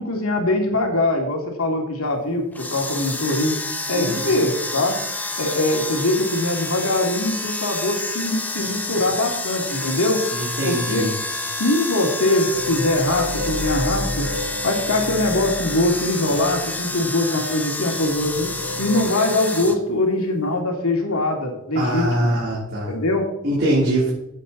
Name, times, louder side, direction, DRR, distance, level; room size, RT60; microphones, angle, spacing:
voice 1, 0.0-3.5 3.9-4.9 5.4-10.2 10.6-11.1 11.6-14.3 14.6-18.5 18.8-22.3 22.9-23.2, left 2 dB, 85° left, 2 dB, 2.8 m, -22 dB
sound 1, 2.5-19.8, left 2 dB, 10° left, 0.8 m, -29 dB
voice 2, 3.9-4.2 10.3-11.1 21.7-22.9 23.4-24.1, right 1 dB, 50° right, -6 dB, 3.4 m, -22 dB
sound 2, 12.5-17.4 17.9-19.0, left 1 dB, 65° right, 5.0 m, -30 dB
15.5 x 8.2 x 4.1 m, 0.89 s
head